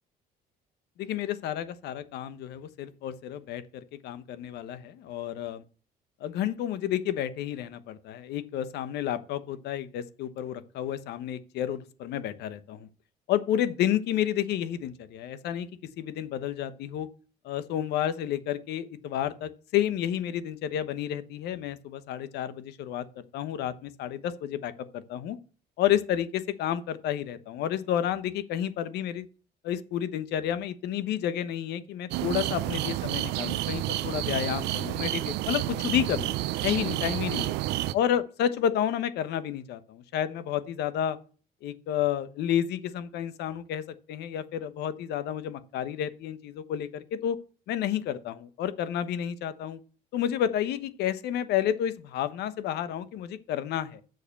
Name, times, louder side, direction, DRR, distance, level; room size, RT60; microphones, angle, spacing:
voice 1, 1.0-5.6 6.2-12.9 13.3-15.7 16.0-17.1 17.4-25.4 25.8-29.3 29.6-36.4 36.6-37.5 37.9-41.2 41.6-47.4 47.7-49.8 50.1-54.0, left 10 dB, 80° left, 1.1 m, -30 dB
sound 1, 32.1-37.9, right 16 dB, 85° right, 0.6 m, -30 dB
7.8 x 6.8 x 6.8 m
cardioid pair, 110°, 17 cm